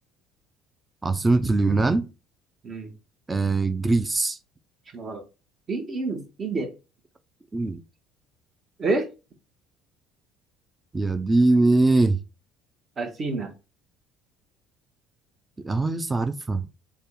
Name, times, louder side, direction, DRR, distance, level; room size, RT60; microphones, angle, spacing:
voice 1, 1.0-2.1 3.3-4.4 7.5-7.8 10.9-12.2 15.6-16.7, right 2 dB, 20° right, 0.3 m, -22 dB
voice 2, 4.9-5.2 5.7-6.7 8.8-9.1 13.0-13.5, right 3 dB, 40° right, 0.8 m, -28 dB
2.7 x 2.2 x 3.6 m
hypercardioid pair, 60°, 0 cm